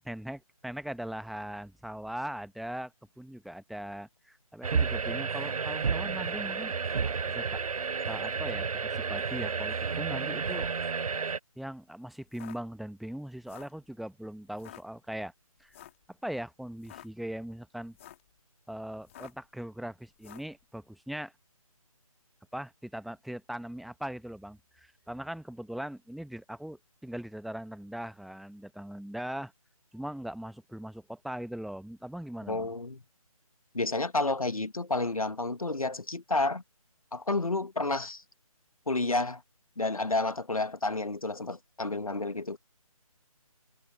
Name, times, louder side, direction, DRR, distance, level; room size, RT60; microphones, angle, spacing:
voice 1, 0.0-6.7 7.3-7.6 8.1-10.7 11.6-15.3 15.6-15.8 16.1-18.0 18.7-21.3 22.5-29.5 29.9-32.7, right 1 dB, ahead, 1.2 m, -40 dB
sound 1, 4.6-11.4, right 5 dB, 75° right, 0.4 m, -31 dB
sound 2, 12.3-12.6 13.3-13.8 14.5-14.8 15.7-16.0 16.7-17.1 17.8-18.3 19.0-19.5 20.2-20.5, left 12 dB, 20° left, 3.0 m, -49 dB
voice 2, 32.5-33.0 33.7-36.6 37.1-38.2 38.9-39.4 39.8-42.6, left 2 dB, 70° left, 1.5 m, -30 dB
figure-of-eight pair, 150°, 19 cm